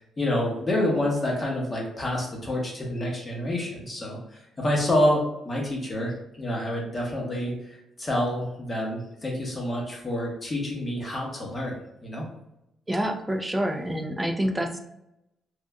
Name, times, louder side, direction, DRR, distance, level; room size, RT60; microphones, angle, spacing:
voice 1, 0.0-11.8 12.0-12.2, left 1 dB, 30° left, -1 dB, 1.0 m, -28 dB
voice 2, 12.9-14.8, equal, 10° right, 4 dB, 0.4 m, -27 dB
3.6 x 2.5 x 2.2 m, 0.84 s
cardioid pair, 90°, 0 cm